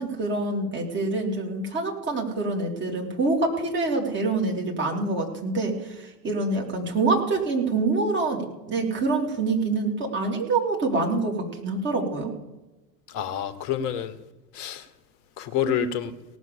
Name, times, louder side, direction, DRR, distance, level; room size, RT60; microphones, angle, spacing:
voice 1, 0.0-12.3, right 3 dB, 25° right, 3.1 m, -26 dB
voice 2, 13.1-14.2 14.5-14.9 15.4-16.1, left 8 dB, 45° left, 1.3 m, -28 dB
18.0 x 6.3 x 7.0 m
figure-of-eight pair, 85°, 49 cm